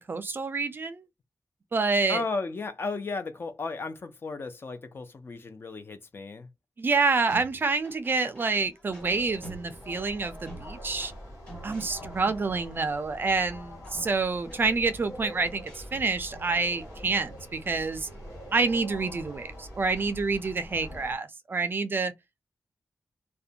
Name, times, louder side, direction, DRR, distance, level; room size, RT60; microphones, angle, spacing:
voice 1, 0.1-1.0 1.7-2.2 6.8-11.1 11.6-18.1 18.5-22.1, right 4 dB, 40° right, 0.4 m, -28 dB
voice 2, 2.1-6.5, left 3 dB, 40° left, 0.5 m, -34 dB
sound 1, 7.0-21.0, right 2 dB, 15° left, 1.4 m, -51 dB
sound 2, 9.0-21.2, equal, 70° left, 1.3 m, -44 dB
2.4 x 2.1 x 2.7 m
wide cardioid pair, 160°, 6 cm